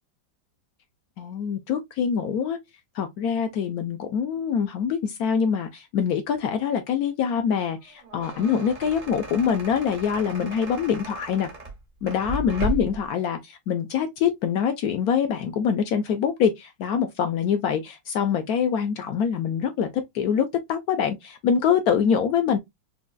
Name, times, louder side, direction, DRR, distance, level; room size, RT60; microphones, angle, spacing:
voice 1, 1.2-2.6 3.0-11.5 12.0-19.9 20.1-22.6, left 7 dB, 75° left, 0.8 m, -24 dB
sound 1, 7.9-13.1, right 2 dB, 45° right, 0.5 m, -35 dB
4.0 x 2.3 x 2.2 m
omnidirectional pair, 2.1 m